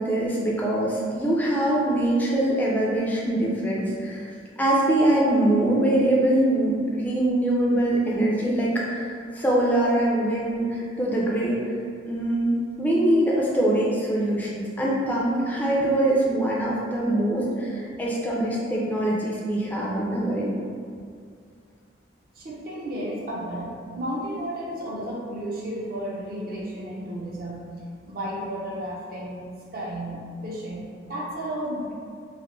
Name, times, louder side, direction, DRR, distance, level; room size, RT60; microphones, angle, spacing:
voice 1, 0.0-4.3 4.6-9.1 9.3-11.6 12.1-20.5, right 1 dB, 10° left, -5 dB, 0.3 m, -23 dB
voice 2, 22.4-27.6 28.1-29.4 29.7-31.9, equal, 50° right, -5 dB, 0.5 m, -33 dB
2.3 x 2.1 x 3.0 m, 2.2 s
head